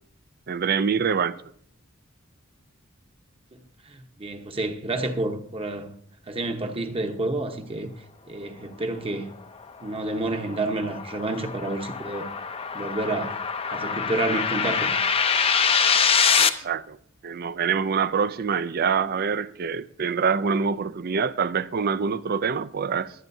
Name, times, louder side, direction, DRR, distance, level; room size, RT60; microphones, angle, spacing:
voice 1, 0.5-1.4 16.4-17.0 17.2-23.1, right 6 dB, 45° right, 0.5 m, -25 dB
voice 2, 3.9-5.9 6.3-7.9 8.3-9.3 9.8-12.3 12.7-13.4 13.7-14.9, right 2 dB, 25° right, 1.0 m, -29 dB
sound 1, 9.6-16.5, left 6 dB, 30° left, 0.6 m, -24 dB
23.0 x 9.0 x 2.7 m
head